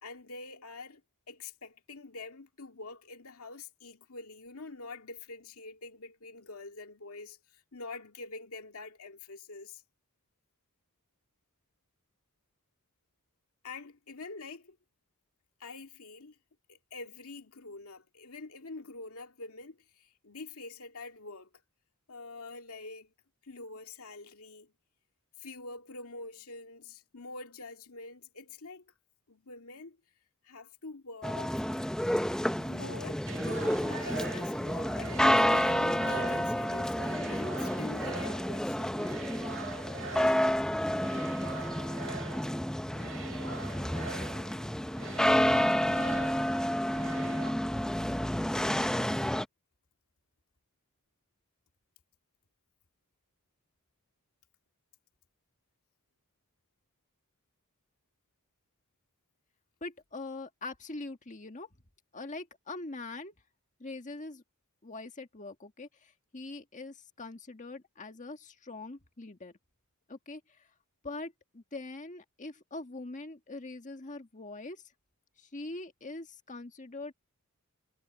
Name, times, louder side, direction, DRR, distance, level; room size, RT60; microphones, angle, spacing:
voice 1, 0.0-1.0 1.3-9.8 13.6-14.8 15.6-16.4 16.7-21.5 22.1-23.1 23.4-24.7 25.4-28.8 29.3-30.0 30.4-31.6 32.6-39.0, left 3 dB, 80° left, 2.2 m, -46 dB
sound 1, 31.2-49.4, equal, 5° left, 0.6 m, -30 dB
sound 2, 33.2-47.5, right 4 dB, 60° right, 2.2 m, -44 dB
voice 2, 59.8-61.7 62.1-63.3 63.8-64.4 64.8-69.5 70.1-70.4 71.0-74.8 75.4-77.1, left 2 dB, 35° left, 1.7 m, -43 dB
head